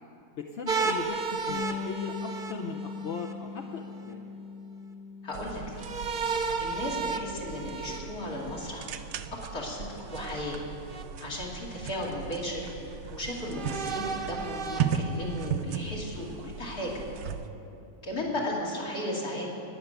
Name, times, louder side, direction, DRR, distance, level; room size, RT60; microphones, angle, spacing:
voice 1, 0.4-4.2 18.2-18.5, left 5 dB, 55° left, 2 dB, 1.0 m, -38 dB
sound 1, 0.7-3.3 5.8-8.8 10.1-11.0 11.8-11.9 13.5-15.5, right 4 dB, 40° right, 0.8 m, -34 dB
Bass guitar, 1.5-6.2 6.5-7.7, left 6 dB, 90° left, 1.2 m, -41 dB
voice 2, 5.2-5.6 6.6-8.9 9.5-9.9 10.1-10.6 11.2-12.7 13.1-17.0 18.0-19.5, left 1 dB, 70° left, -4 dB, 3.3 m, -35 dB
sound 2, 5.3-17.5, right 7 dB, 75° right, 1.1 m, -37 dB
19.5 x 6.9 x 9.0 m, 2.8 s
omnidirectional pair, 1.6 m